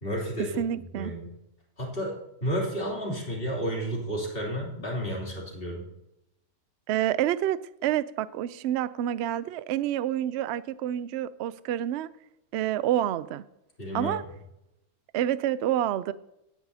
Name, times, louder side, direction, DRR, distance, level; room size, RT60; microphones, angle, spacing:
voice 1, 0.0-1.3 1.8-5.9 13.8-14.2, equal, 40° left, -2 dB, 3.3 m, -32 dB
voice 2, 0.6-1.1 6.9-12.1 12.5-13.4 13.9-14.2 15.1-16.1, right 12 dB, 65° right, 16 dB, 0.7 m, -28 dB
16.5 x 10.5 x 2.8 m, 0.84 s
omnidirectional pair, 1.5 m